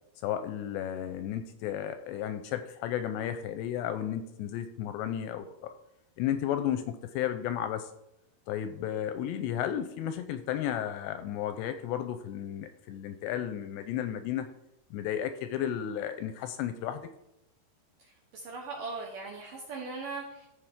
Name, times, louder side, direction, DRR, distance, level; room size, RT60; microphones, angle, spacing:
voice 1, 0.2-5.7 6.2-7.9 8.5-14.5 14.9-17.1, left 10 dB, 80° left, 9 dB, 2.6 m, -33 dB
voice 2, 18.3-20.5, right 3 dB, 70° right, 0 dB, 2.1 m, -39 dB
15.0 x 5.9 x 3.6 m, 0.85 s
omnidirectional pair, 5.3 m